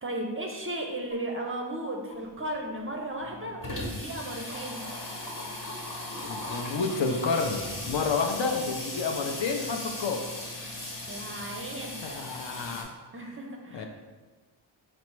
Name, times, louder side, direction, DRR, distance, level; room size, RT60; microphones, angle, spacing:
voice 1, 0.0-4.8 11.1-12.2 13.1-13.9, right 1 dB, 30° right, 1 dB, 0.4 m, -35 dB
sound 1, 1.1-1.2 2.1-2.2 3.1-3.2 4.1-4.2 5.1-5.2 6.1-6.2 7.1-7.2 8.1-8.2 9.1-9.2 10.1-10.2, left 9 dB, 25° left, 0.6 m, -50 dB
Water tap faucet / Sink (filling or washing), 2.2-2.3 2.6-2.7 2.9-12.8, left 1 dB, 45° left, 0.9 m, -38 dB
voice 2, 6.2-10.2 12.0-12.9 13.7-13.9, left 4 dB, 65° left, 4 dB, 0.5 m, -30 dB
4.2 x 2.0 x 4.4 m, 1.3 s
wide cardioid pair, 90°, 47 cm